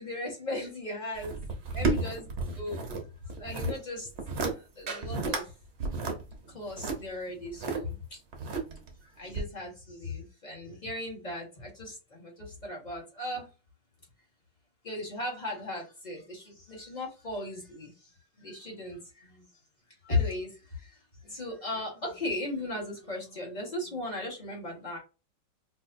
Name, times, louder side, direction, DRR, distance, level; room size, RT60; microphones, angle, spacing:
voice 1, 0.0-1.4 1.7-2.8 3.3-4.1 4.3-4.5 4.7-5.4 6.5-8.2 9.2-13.4 14.8-17.9 18.4-19.4 20.0-20.9 21.2-25.0, left 2 dB, 30° left, -2 dB, 1.0 m, -36 dB
sound 1, 1.2-3.0 3.3-3.8 4.2-4.5 4.9-5.4 5.8-7.8 8.3-8.9 9.3-9.4, right 3 dB, 60° right, 0.7 m, -32 dB
4.2 x 2.6 x 2.5 m, 0.30 s
omnidirectional pair, 2.1 m